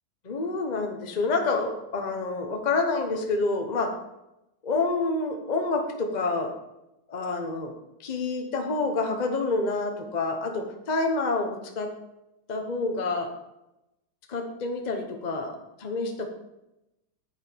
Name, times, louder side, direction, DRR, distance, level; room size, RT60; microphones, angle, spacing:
voice 1, 0.2-3.9 4.6-6.5 7.1-7.7 8.0-11.9 12.5-13.3 14.3-16.3, left 3 dB, 35° left, 4 dB, 0.7 m, -28 dB
8.9 x 8.0 x 4.5 m, 0.92 s
omnidirectional pair, 2.3 m